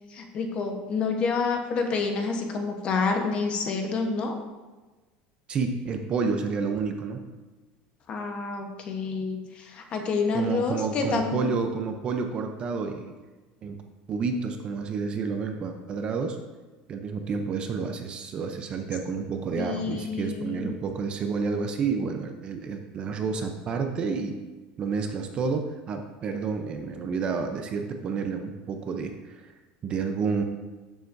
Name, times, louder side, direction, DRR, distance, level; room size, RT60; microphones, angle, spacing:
voice 1, 0.1-4.4 8.1-11.4 19.6-20.7, left 4 dB, 30° left, 3 dB, 1.0 m, -28 dB
voice 2, 5.5-7.3 10.3-13.1 13.6-13.8 14.1-16.4 16.9-24.4 24.8-29.5 29.8-30.4, right 5 dB, 25° right, 5 dB, 0.6 m, -30 dB
13.0 x 7.1 x 2.6 m, 1.2 s
cardioid pair, 175°, 4 cm